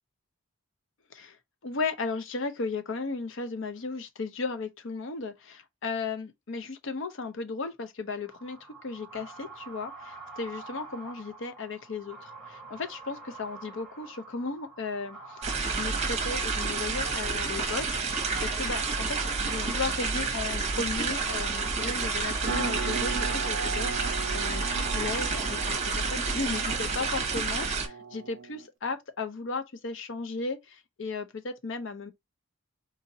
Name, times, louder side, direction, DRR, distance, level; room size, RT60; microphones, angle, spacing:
voice 1, 1.6-32.1, left 4 dB, 55° left, 0.6 m, -35 dB
sound 1, 8.2-27.1, right 3 dB, ahead, 1.2 m, -46 dB
sound 2, 15.4-27.9, right 4 dB, 30° right, 0.8 m, -29 dB
sound 3, 22.5-28.7, right 5 dB, 50° right, 0.4 m, -38 dB
3.9 x 2.8 x 2.6 m
head